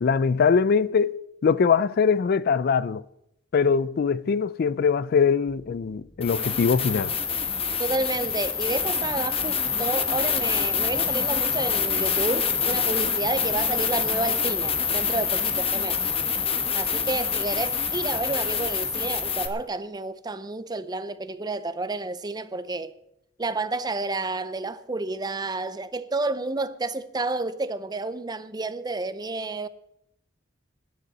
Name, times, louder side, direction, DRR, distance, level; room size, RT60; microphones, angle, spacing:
voice 1, 0.0-3.0 3.5-7.1, left 5 dB, 50° left, 0.4 m, -22 dB
sound 1, 6.2-19.5, left 6 dB, 30° left, 1.0 m, -26 dB
voice 2, 7.7-16.0 16.7-22.9 23.4-29.7, right 3 dB, 20° right, 0.6 m, -30 dB
21.0 x 9.5 x 4.1 m
head